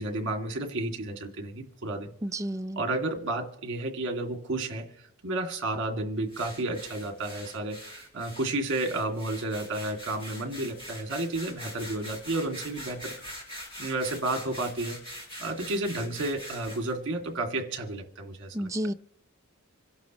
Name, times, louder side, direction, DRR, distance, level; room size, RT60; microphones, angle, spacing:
voice 1, 0.0-2.1 2.8-13.2 13.8-15.0 15.4-18.7, right 2 dB, 55° right, 2.2 m, -32 dB
voice 2, 2.2-2.8 18.5-18.9, right 1 dB, 15° right, 0.4 m, -31 dB
sound 1, 6.3-16.9, equal, 25° left, 5.9 m, -43 dB
26.5 x 11.0 x 3.0 m
head